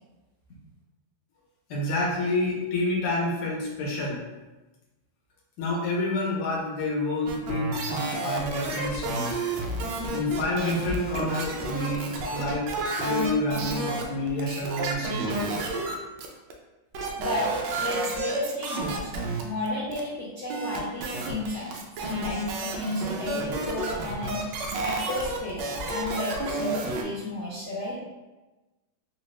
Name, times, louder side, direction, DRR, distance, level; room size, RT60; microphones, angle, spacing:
voice 1, 1.7-4.2 5.6-9.4 10.1-12.7 13.0-15.5, left 2 dB, 60° left, -3 dB, 1.2 m, -29 dB
sound 1, 7.3-16.5 16.9-19.7 19.9-20.0 20.5-27.0, right 2 dB, 75° right, 1.0 m, -31 dB
voice 2, 17.1-19.1 19.4-24.5 24.8-28.0, left 1 dB, 85° left, -7 dB, 0.6 m, -33 dB
4.2 x 2.4 x 3.1 m, 1.1 s
omnidirectional pair, 2.4 m